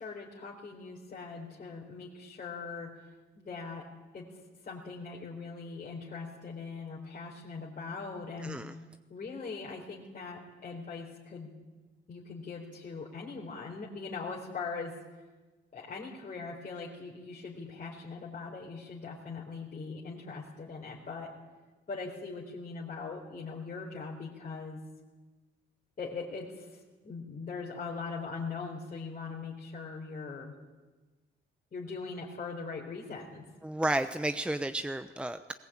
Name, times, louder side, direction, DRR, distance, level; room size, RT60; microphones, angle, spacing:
voice 1, 0.0-2.9 3.4-3.8 4.1-4.3 4.6-8.6 9.1-11.5 12.1-14.9 15.7-21.3 21.9-24.8 26.0-30.5 31.7-33.5, left 4 dB, 45° left, -4 dB, 4.1 m, -41 dB
voice 2, 8.4-8.7 33.6-35.5, right 1 dB, 5° right, 9 dB, 0.9 m, -32 dB
20.0 x 18.5 x 8.8 m, 1.3 s
cardioid pair, 90°, 20 cm